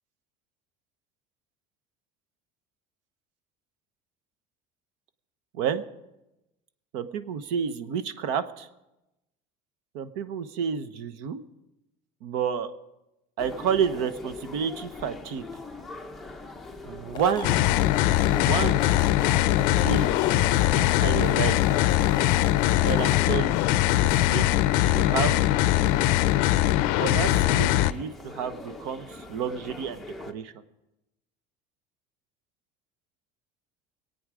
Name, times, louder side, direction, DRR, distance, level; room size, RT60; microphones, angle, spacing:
voice 1, 5.5-5.8 6.9-8.7 9.9-11.4 12.2-12.7 13.4-15.5 16.8-17.6 18.3-18.8 19.6-20.2 20.7-21.6 22.8-23.6 24.0-24.5 24.8-25.4 27.0-30.5, right 7 dB, 75° right, 11 dB, 1.0 m, -30 dB
sound 1, 13.4-30.3, left 2 dB, ahead, 0.8 m, -42 dB
sound 2, 17.1-23.2, left 8 dB, 25° left, 1.1 m, -36 dB
sound 3, 17.4-27.9, left 15 dB, 60° left, 0.5 m, -22 dB
24.0 x 8.8 x 5.0 m, 0.96 s
cardioid pair, 160°, 16 cm